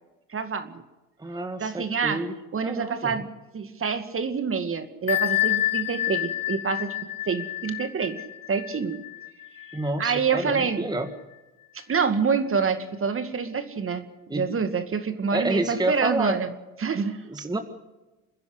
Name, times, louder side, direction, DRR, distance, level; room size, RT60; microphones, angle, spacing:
voice 1, 0.3-0.8 1.6-2.2 2.5-6.9 7.3-8.2 8.5-9.0 10.0-10.9 11.9-16.5 16.8-17.2, right 5 dB, 30° right, 9 dB, 2.1 m, -27 dB
voice 2, 1.2-2.3 2.6-3.2 9.7-11.1 14.3-14.4 15.3-16.4 17.3-17.6, right 2 dB, 10° right, 8 dB, 1.8 m, -29 dB
Bell, 5.1-10.5, left 15 dB, 50° left, 1.6 m, -29 dB
27.5 x 10.5 x 9.8 m, 1.1 s
hypercardioid pair, 75°, 42 cm